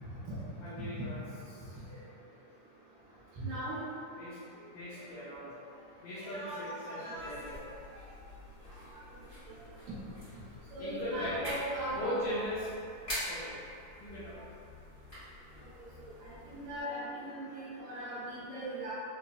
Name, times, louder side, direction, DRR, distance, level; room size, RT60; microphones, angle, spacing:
voice 1, 0.6-1.2 1.5-1.8 4.2-5.6 6.0-7.6 10.8-11.5 11.9-12.7 13.0-13.6 14.0-14.4, left 1 dB, 80° left, -11 dB, 1.7 m, -39 dB
voice 2, 3.4-3.8 6.1-7.3 10.7-12.0 16.0-18.9, right 1 dB, 90° right, -11 dB, 2.5 m, -39 dB
sound 1, 7.1-16.8, left 1 dB, 45° left, 0.7 m, -46 dB
5.7 x 2.0 x 2.3 m, 2.6 s
omnidirectional pair, 3.7 m